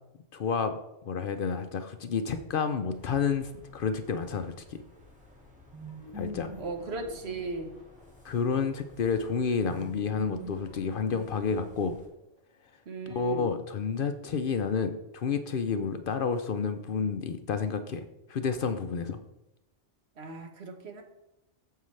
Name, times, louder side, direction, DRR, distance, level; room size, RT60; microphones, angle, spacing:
voice 1, 0.3-0.7 1.0-4.9 6.1-6.5 8.2-12.0 13.1-19.2, left 5 dB, 60° left, 8 dB, 0.7 m, -30 dB
sound 1, 2.9-12.1, left 2 dB, 5° right, 1.9 m, -56 dB
sound 2, 5.7-8.3 9.7-12.1, left 1 dB, 25° right, 1.5 m, -45 dB
voice 2, 6.6-7.8 12.9-13.5 20.2-21.0, right 3 dB, 65° right, 5 dB, 1.3 m, -37 dB
9.2 x 7.4 x 3.2 m, 0.91 s
omnidirectional pair, 1.2 m